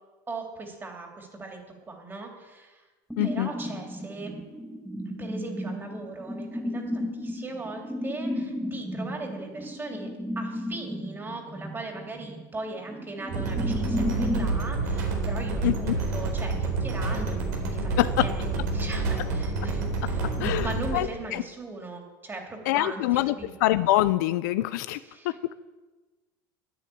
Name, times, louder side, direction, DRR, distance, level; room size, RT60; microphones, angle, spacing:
voice 1, 0.3-1.6 1.9-2.8 3.2-4.3 5.0-10.1 10.3-23.5 24.9-25.5, right 3 dB, 20° right, 2 dB, 3.3 m, -39 dB
sound 1, 3.1-14.5, equal, ahead, 1.8 m, -34 dB
voice 2, 3.2-3.5 15.6-16.0 18.0-18.2 20.4-21.1 21.3-21.4 22.7-23.3 23.6-25.0 25.2-25.3, left 16 dB, 80° left, 13 dB, 0.5 m, -24 dB
sound 2, 13.3-21.0, right 3 dB, 85° right, 4.1 m, -28 dB
10.0 x 9.9 x 8.7 m, 1.2 s
supercardioid pair, 105°, 10 cm